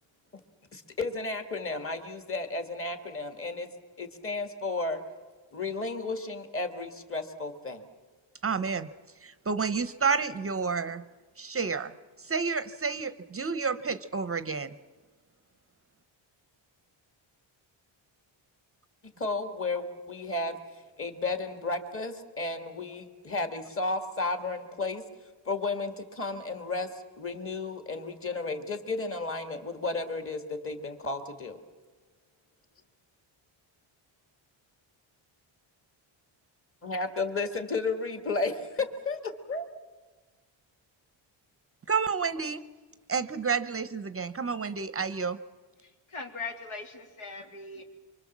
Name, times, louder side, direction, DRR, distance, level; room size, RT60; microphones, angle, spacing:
voice 1, 0.7-3.7 4.0-5.0 5.5-7.8 19.2-20.6 21.0-25.0 25.5-31.6 36.8-39.7, left 3 dB, 25° left, 7 dB, 1.9 m, -33 dB
voice 2, 8.4-8.9 9.2-11.0 11.4-11.9 12.2-14.7 41.9-42.6 43.1-45.4, right 5 dB, 30° right, 13 dB, 0.7 m, -30 dB
voice 3, 45.8-47.8, left 4 dB, 80° left, 2 dB, 3.4 m, -40 dB
25.0 x 24.5 x 7.3 m, 1.3 s
wide cardioid pair, 140°, 49 cm